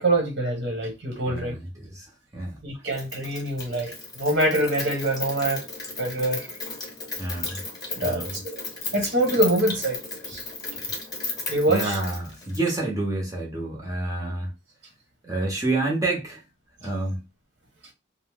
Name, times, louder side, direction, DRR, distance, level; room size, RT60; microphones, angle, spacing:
voice 1, 0.0-1.6 2.6-5.7 6.0-6.5 7.9-8.6 8.9-10.0 10.2-10.4 11.5-12.0, right 1 dB, 55° right, 1.1 m, -25 dB
voice 2, 1.3-2.1 2.3-2.6 7.2-7.6 8.0-8.4 11.7-14.5 15.2-16.4 16.8-17.2, right 2 dB, 15° right, 0.7 m, -28 dB
Rain, 2.9-12.8, left 3 dB, 20° left, 0.9 m, -35 dB
2.6 x 2.0 x 3.4 m
head